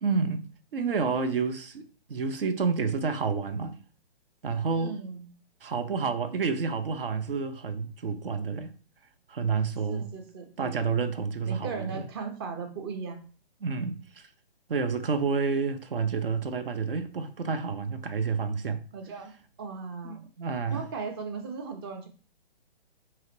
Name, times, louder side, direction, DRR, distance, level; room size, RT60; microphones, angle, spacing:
voice 1, 0.0-0.5 0.7-3.8 4.4-5.0 5.6-8.7 9.3-10.1 10.6-12.0 13.6-14.3 14.7-18.8 20.0-20.8, right 5 dB, 65° right, 0.6 m, -29 dB
voice 2, 4.7-5.2 9.9-10.8 11.4-13.2 18.9-20.2 20.7-22.1, right 5 dB, 25° right, 0.6 m, -37 dB
4.7 x 2.9 x 3.1 m
figure-of-eight pair, 130°, 30 cm